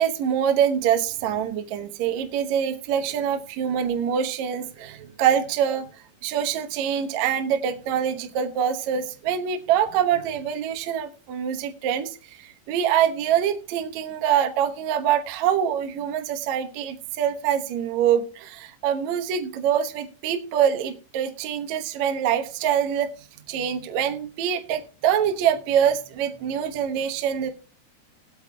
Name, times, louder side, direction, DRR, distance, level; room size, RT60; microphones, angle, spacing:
voice 1, 0.0-5.9 6.2-23.1 23.5-27.5, right 9 dB, 90° right, 6 dB, 1.6 m, -24 dB
20.5 x 8.4 x 2.3 m, 0.37 s
omnidirectional pair, 5.0 m